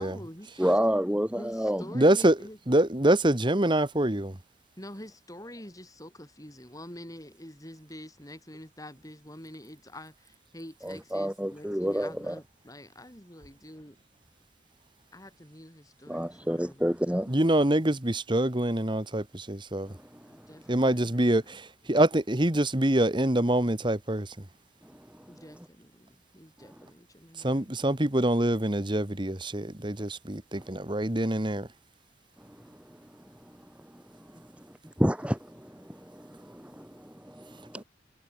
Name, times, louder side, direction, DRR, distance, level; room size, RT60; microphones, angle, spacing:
voice 1, 0.0-0.8 1.4-2.6 4.8-13.9 15.1-16.9 20.3-21.6 25.3-27.8 34.3-34.4, left 1 dB, 20° left, 7.9 m, -47 dB
voice 2, 0.6-1.8 10.8-12.3 16.1-17.3 35.0-37.8, equal, 5° right, 1.8 m, -29 dB
voice 3, 1.9-2.3 2.7-4.3 17.3-19.9 20.7-21.6 21.9-24.3 27.4-31.6, right 1 dB, 25° right, 1.5 m, -25 dB
head